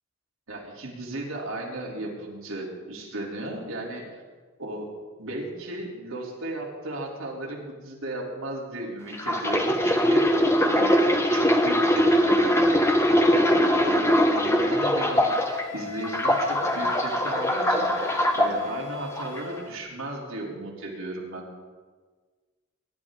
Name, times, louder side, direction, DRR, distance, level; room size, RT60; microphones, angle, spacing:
voice 1, 0.5-4.2 4.6-4.9 5.2-10.3 10.6-11.1 11.3-12.8 13.3-21.5, right 2 dB, 90° right, -2 dB, 3.3 m, -35 dB
sound 1, 9.1-15.6 16.0-18.5 19.2-19.4, equal, 15° left, 1.0 m, -22 dB
Wind instrument woodwind instrument, 15.1-19.7, left 9 dB, 65° left, 2.7 m, -39 dB
22.5 x 11.0 x 3.7 m, 1.4 s
head